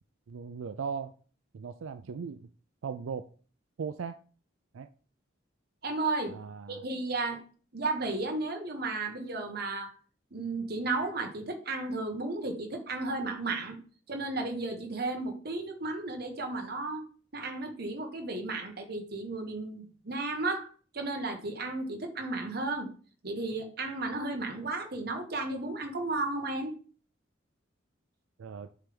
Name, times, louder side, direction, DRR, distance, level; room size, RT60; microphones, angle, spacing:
voice 1, 0.3-1.1 1.5-2.5 2.8-3.2 3.8-4.2 4.7-4.9 6.3-6.8 28.4-28.7, right 6 dB, 85° right, 10 dB, 0.4 m, -38 dB
voice 2, 5.8-6.4 6.7-7.4 7.7-9.9 10.3-13.8 14.1-17.0 17.3-20.7 20.9-22.9 23.2-26.7, right 2 dB, 50° right, 3 dB, 1.3 m, -33 dB
7.4 x 3.4 x 5.2 m, 0.41 s
head